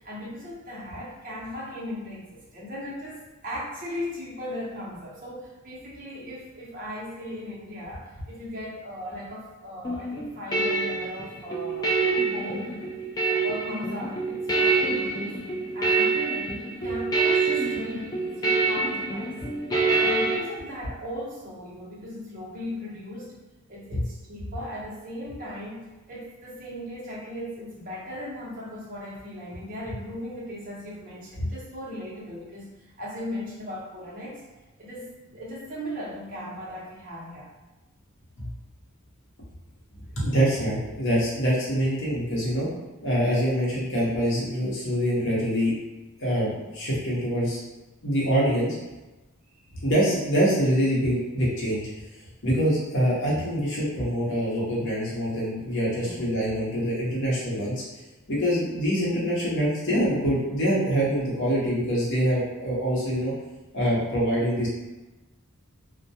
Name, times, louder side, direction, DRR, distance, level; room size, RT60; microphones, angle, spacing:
voice 1, 0.0-12.7 13.2-15.5 15.7-16.5 16.8-19.4 19.9-23.4 23.7-34.4 34.8-37.5 55.9-56.3, left 1 dB, 40° right, -7 dB, 0.7 m, -38 dB
sound 1, 9.8-20.4, right 3 dB, 20° left, 0.3 m, -26 dB
voice 2, 40.1-42.7 43.0-45.7 46.2-47.6 48.0-48.8 49.8-51.9 52.4-57.8 58.3-63.3 63.7-64.7, equal, 60° left, -6 dB, 0.8 m, -25 dB
2.2 x 2.1 x 2.7 m, 1.1 s
head